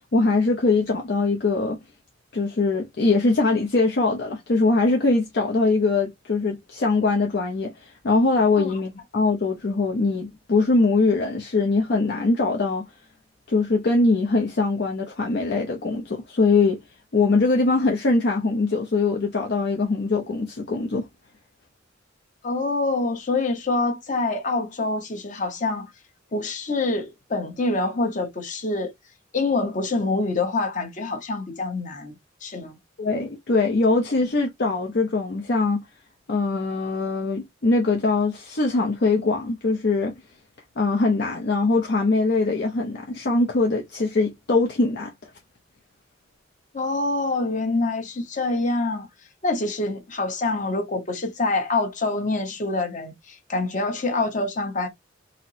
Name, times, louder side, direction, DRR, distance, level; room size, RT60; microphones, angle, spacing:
voice 1, 0.1-1.8 2.3-12.8 13.5-16.8 17.1-21.0 33.0-35.8 36.3-40.1 40.8-45.1, left 3 dB, 60° left, 0.6 m, -22 dB
voice 2, 22.4-25.9 26.3-28.9 29.3-32.1 32.4-32.8 46.7-49.1 49.4-54.9, left 2 dB, 40° left, 1.0 m, -26 dB
4.2 x 2.0 x 2.7 m
head